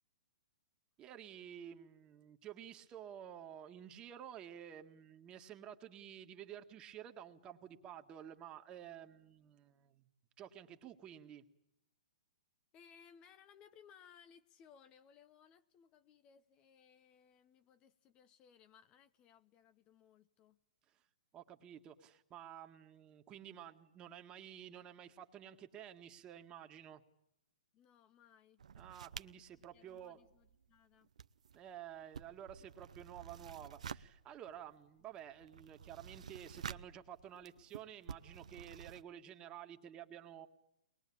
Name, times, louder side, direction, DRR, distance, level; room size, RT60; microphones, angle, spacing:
voice 1, 1.0-10.1 10.4-11.5 20.9-21.1 21.3-27.0 28.8-30.2 31.5-40.5, right 10 dB, 25° right, 6 dB, 1.9 m, -52 dB
voice 2, 12.7-20.6 27.7-28.6 29.7-31.1, left 7 dB, 25° left, 12 dB, 0.9 m, -64 dB
sound 1, 28.6-30.8 31.0-39.0, right 7 dB, 75° right, 0.9 m, -51 dB
23.0 x 21.0 x 8.7 m, 0.83 s
hypercardioid pair, 135°, 4 cm